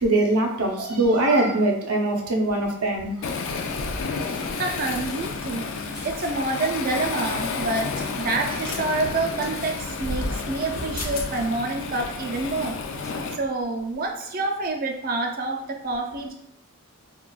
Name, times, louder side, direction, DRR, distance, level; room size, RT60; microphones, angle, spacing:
voice 1, 0.0-3.1, right 2 dB, 85° right, 1 dB, 0.7 m, -22 dB
Waves surf, 3.2-13.4, left 4 dB, 60° left, 0.3 m, -31 dB
sound 1, 3.3-13.4 13.8-14.1, equal, 15° left, 0.9 m, -39 dB
voice 2, 4.3-5.7 6.0-12.8 13.0-16.3, right 2 dB, 40° right, 1 dB, 0.4 m, -28 dB
sound 2, 6.6-6.8 8.5-8.8 9.4-9.5 10.7-10.8 11.0-11.3, left 4 dB, 85° left, 0.7 m, -35 dB
3.8 x 2.3 x 2.3 m, 0.74 s
head